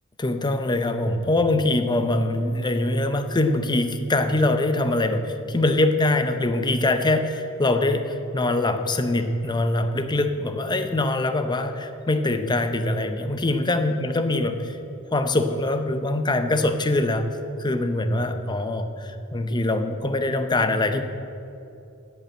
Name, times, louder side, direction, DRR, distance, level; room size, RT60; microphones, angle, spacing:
voice 1, 0.2-14.8 15.1-21.0, left 2 dB, 20° left, 8 dB, 0.7 m, -23 dB
14.5 x 5.5 x 7.4 m, 2.7 s
head